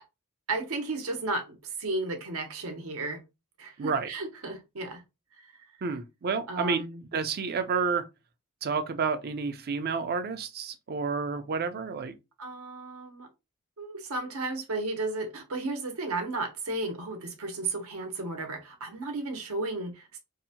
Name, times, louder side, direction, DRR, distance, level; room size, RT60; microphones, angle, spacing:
voice 1, 0.5-3.2 3.6-5.0 5.4-5.6 6.5-7.0 12.4-13.3 13.8-20.2, right 2 dB, 80° right, 0.8 m, -34 dB
voice 2, 3.8-4.1 5.8-6.8 7.1-8.0 8.6-12.1, right 5 dB, 45° right, 0.4 m, -30 dB
2.7 x 2.1 x 2.7 m
head